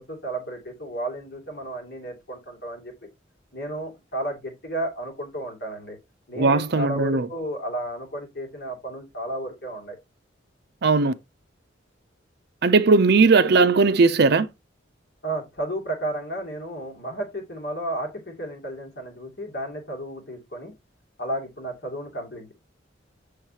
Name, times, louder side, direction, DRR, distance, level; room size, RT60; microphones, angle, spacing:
voice 1, 0.0-2.9 3.5-6.0 6.3-10.0 15.2-20.7 21.2-22.5, right 1 dB, 55° left, 2.5 m, -33 dB
voice 2, 6.4-7.3 10.8-11.1 12.6-14.5, right 4 dB, 60° right, 0.5 m, -18 dB
6.5 x 6.4 x 2.8 m
head